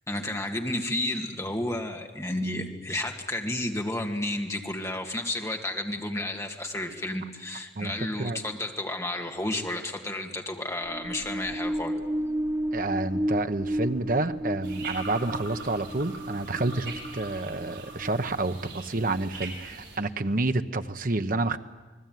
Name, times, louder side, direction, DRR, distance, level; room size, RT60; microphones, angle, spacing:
voice 1, 0.1-12.0, left 1 dB, 15° left, 3 dB, 2.1 m, -31 dB
sound 1, 10.7-18.4, equal, 15° right, 2.0 m, -33 dB
voice 2, 12.7-21.6, right 2 dB, 45° right, 9 dB, 1.0 m, -29 dB
sound 2, 14.6-20.0, right 4 dB, 65° right, 7.1 m, -41 dB
28.0 x 20.0 x 9.3 m, 1.3 s
head